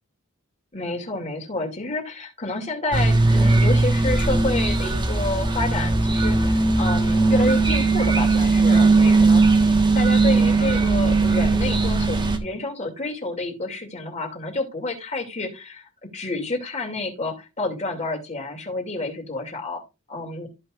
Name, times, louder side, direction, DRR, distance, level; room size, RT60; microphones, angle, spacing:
voice 1, 0.7-9.4 9.9-19.8 20.1-20.5, left 2 dB, 30° left, 2 dB, 2.4 m, -29 dB
sound 1, 2.9-12.4, right 3 dB, 20° right, 1.3 m, -18 dB
14.0 x 5.6 x 2.4 m, 0.26 s
head